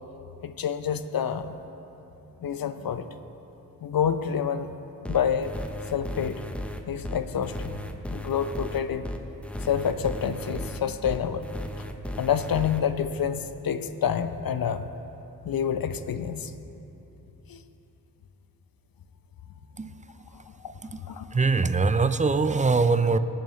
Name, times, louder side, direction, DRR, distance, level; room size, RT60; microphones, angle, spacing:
voice 1, 0.4-1.6 2.4-3.0 3.8-4.7 5.1-5.6 5.9-6.4 6.9-7.8 8.1-9.1 9.6-11.5 12.2-14.9 15.4-16.5 17.5-17.6 21.1-21.3, left 8 dB, 55° left, 11 dB, 0.7 m, -28 dB
sound 1, 5.0-12.8, equal, 5° left, 0.8 m, -35 dB
voice 2, 21.3-23.2, right 4 dB, 20° right, 12 dB, 0.5 m, -22 dB
19.0 x 7.3 x 3.2 m, 3.0 s
supercardioid pair, 45°, 41 cm